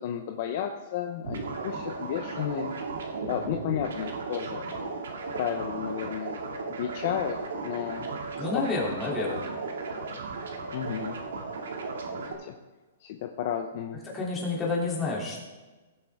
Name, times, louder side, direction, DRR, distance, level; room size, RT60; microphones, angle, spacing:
voice 1, 0.0-2.7 3.3-4.7 5.3-6.4 6.7-7.4 7.6-8.1 8.5-8.6 9.1-9.4 10.7-11.2 12.1-12.5 13.0-14.0, left 9 dB, 45° left, 4 dB, 0.8 m, -32 dB
sound 1, 1.2-12.3, right 4 dB, 85° right, 2.2 m, -35 dB
voice 2, 8.4-9.5 14.0-15.4, left 3 dB, 15° left, -4 dB, 3.1 m, -29 dB
17.0 x 7.8 x 3.7 m, 1.2 s
hypercardioid pair, 160°, 0 cm